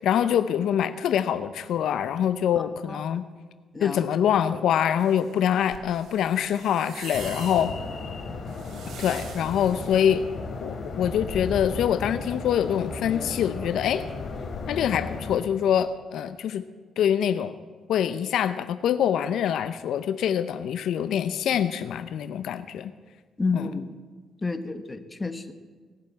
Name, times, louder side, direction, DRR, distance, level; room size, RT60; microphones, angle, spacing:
voice 1, 0.0-3.3 3.8-7.7 9.0-10.2 10.6-14.0 14.7-16.6 17.0-17.6 17.9-22.9 23.5-23.7, left 9 dB, 75° left, 12 dB, 0.6 m, -25 dB
voice 2, 2.6-3.2 3.7-4.0 23.4-23.9 24.4-25.5, left 3 dB, 20° left, 9 dB, 1.2 m, -31 dB
sound 1, 5.0-10.1, right 6 dB, 70° right, 1.9 m, -44 dB
sound 2, 7.1-15.4, left 4 dB, 50° left, 2.7 m, -35 dB
18.5 x 6.8 x 8.4 m, 1.5 s
cardioid pair, 90°, 0 cm